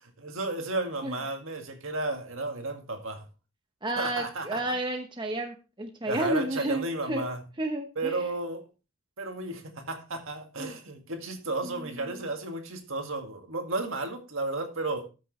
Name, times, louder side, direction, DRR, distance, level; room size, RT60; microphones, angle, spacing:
voice 1, 0.0-3.2 4.0-4.6 6.1-7.4 8.0-8.7 9.2-15.1, right 2 dB, 60° right, 1.9 m, -33 dB
voice 2, 3.8-7.3 7.6-8.2 10.6-10.8 11.6-12.3, right 1 dB, 20° right, 0.9 m, -32 dB
13.0 x 6.5 x 3.1 m
head